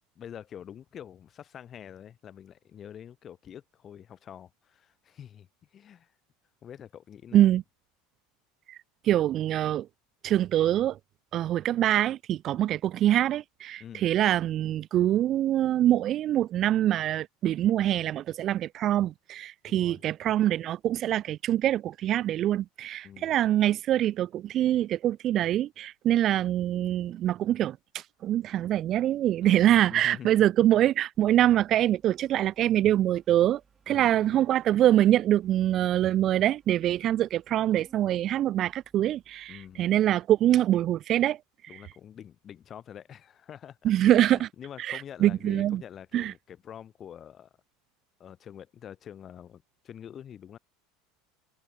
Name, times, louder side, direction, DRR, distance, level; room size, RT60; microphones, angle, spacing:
voice 1, 0.1-6.1 6.6-7.5 12.5-12.7 13.8-14.0 19.7-20.0 23.0-23.3 29.4-30.5 33.9-34.4 39.5-39.9 41.7-47.5 48.2-50.6, left 9 dB, 25° left, 2.8 m, -46 dB
voice 2, 9.0-9.9 10.2-11.0 11.3-33.6 33.9-41.4 43.8-44.5 44.8-45.8 46.1-46.3, right 12 dB, 35° right, 0.3 m, -24 dB
Organ, 31.1-40.2, right 6 dB, 20° right, 5.3 m, -62 dB
cardioid pair, 160°, 0 cm